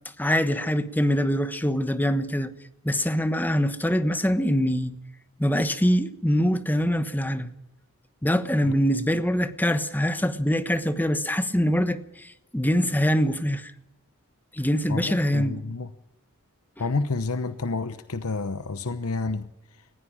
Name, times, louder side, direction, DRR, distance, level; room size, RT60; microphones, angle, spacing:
voice 1, 0.2-2.5 2.8-5.0 5.4-7.5 8.2-13.7 14.5-15.5, equal, 10° left, 1.2 m, -24 dB
voice 2, 14.9-15.9 16.8-19.8, left 3 dB, 70° left, 0.9 m, -30 dB
20.0 x 15.5 x 8.8 m
head